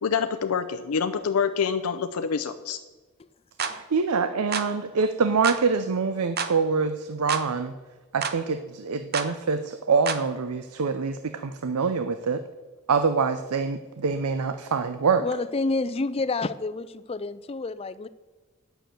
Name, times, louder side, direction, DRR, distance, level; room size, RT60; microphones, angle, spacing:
voice 1, 0.0-2.8, left 6 dB, 90° left, 9 dB, 0.5 m, -26 dB
sound 1, 3.6-3.8 4.5-4.7 5.4-5.6 6.4-6.5 7.3-7.5 8.2-8.4 9.1-9.3 10.1-10.2, right 6 dB, 45° right, 0.7 m, -29 dB
voice 2, 3.7-7.7 8.1-12.4 12.9-15.3, right 5 dB, 90° right, 10 dB, 0.6 m, -25 dB
voice 3, 15.2-18.1, left 3 dB, 25° left, 14 dB, 0.4 m, -29 dB
9.1 x 6.9 x 7.7 m, 1.3 s
head